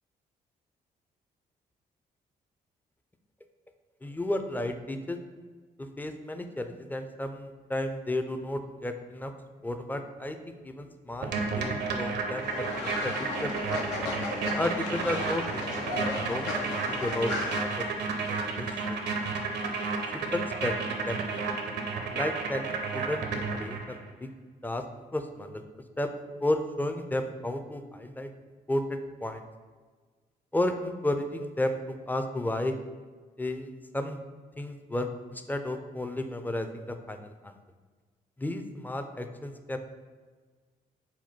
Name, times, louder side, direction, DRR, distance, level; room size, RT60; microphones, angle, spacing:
voice 1, 4.0-5.2 6.0-9.3 9.6-10.4 10.6-13.1 13.4-13.5 14.6-15.7 15.9-16.5 16.9-19.3 20.1-21.4 22.1-24.3 24.6-24.8 25.1-25.6 26.0-26.1 26.4-28.3 28.7-29.4 30.5-31.8 32.1-32.7 33.4-34.2 34.6-37.5 38.4-39.8, left 1 dB, 10° left, 6 dB, 0.4 m, -33 dB
sound 1, 11.2-24.0, right 4 dB, 65° right, 0.6 m, -32 dB
Fowl, 12.4-17.6, left 3 dB, 80° left, 0.6 m, -35 dB
4.2 x 2.2 x 4.3 m, 1.4 s
hypercardioid pair, 45°, 19 cm